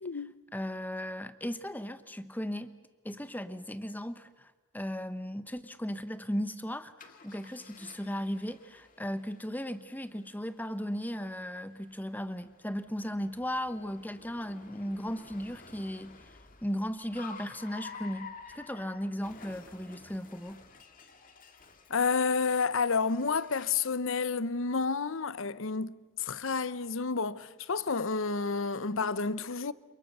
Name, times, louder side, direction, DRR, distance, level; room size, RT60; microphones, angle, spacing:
voice 1, 0.0-0.3 21.9-29.7, left 4 dB, 60° left, 0.8 m, -30 dB
voice 2, 0.5-2.7 3.0-16.3 16.6-20.6, equal, 10° left, 1.0 m, -36 dB
Car, 7.0-23.9, left 5 dB, 40° left, 2.1 m, -52 dB
29.0 x 27.0 x 6.8 m
head